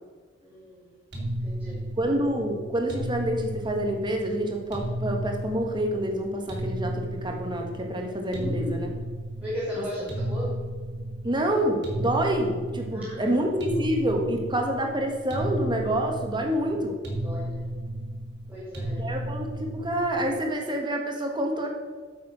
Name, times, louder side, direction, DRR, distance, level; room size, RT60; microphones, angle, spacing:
voice 1, 0.4-0.9 1.4-1.8 8.4-8.7 9.4-10.6 12.9-13.5 17.2-17.7 18.5-19.1, left 1 dB, 10° right, -8 dB, 2.5 m, -36 dB
sound 1, 1.1-20.4, right 1 dB, 60° right, 2.8 m, -34 dB
voice 2, 2.0-8.9 9.7-9.8 11.2-17.0 19.0-21.7, right 1 dB, 25° right, 2 dB, 1.6 m, -27 dB
9.2 x 7.3 x 6.3 m, 1.5 s
head